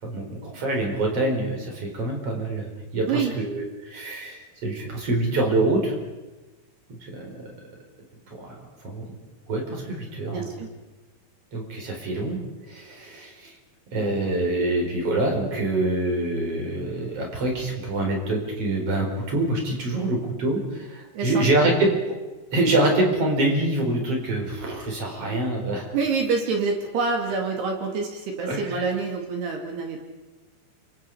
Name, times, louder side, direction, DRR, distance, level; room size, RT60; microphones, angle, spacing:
voice 1, 0.0-5.9 7.0-7.3 8.3-8.6 8.8-9.1 9.5-10.5 11.5-12.4 12.7-13.5 13.9-21.9 22.5-25.9 28.4-28.8, right 2 dB, 30° right, 1 dB, 5.4 m, -25 dB
voice 2, 10.3-10.7 21.1-21.7 25.9-30.0, right 4 dB, 65° right, 2 dB, 4.4 m, -26 dB
29.5 x 26.0 x 5.0 m, 1.1 s
omnidirectional pair, 5.3 m